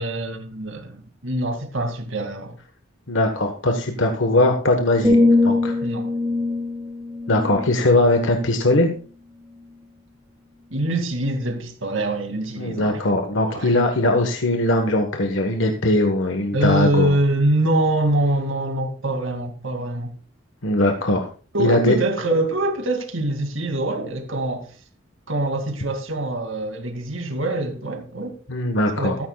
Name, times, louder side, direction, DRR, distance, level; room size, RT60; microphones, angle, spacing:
voice 1, 0.0-2.6 5.8-6.1 10.7-13.0 13.4-13.7 16.5-20.2 21.5-24.8 25.3-28.4 28.9-29.1, right 1 dB, 80° right, 2.3 m, -24 dB
voice 2, 3.1-5.8 7.3-8.9 12.6-17.2 20.6-21.3 21.6-22.0 28.5-29.2, left 1 dB, 70° left, 1.3 m, -20 dB
sound 1, 5.0-8.9 9.4-9.7, left 2 dB, 10° right, 1.8 m, -22 dB
14.0 x 13.5 x 2.3 m
head